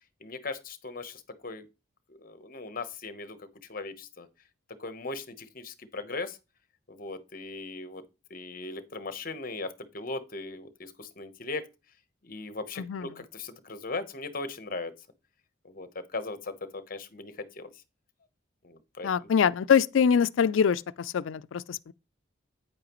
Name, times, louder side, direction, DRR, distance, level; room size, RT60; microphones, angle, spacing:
voice 1, 0.2-1.7 2.1-4.3 4.8-6.4 6.9-8.0 8.3-11.7 12.2-15.0 15.6-17.7 18.6-19.3, left 3 dB, 50° left, 1.0 m, -38 dB
voice 2, 19.0-21.9, left 7 dB, 80° left, 0.4 m, -24 dB
9.0 x 8.7 x 3.0 m
head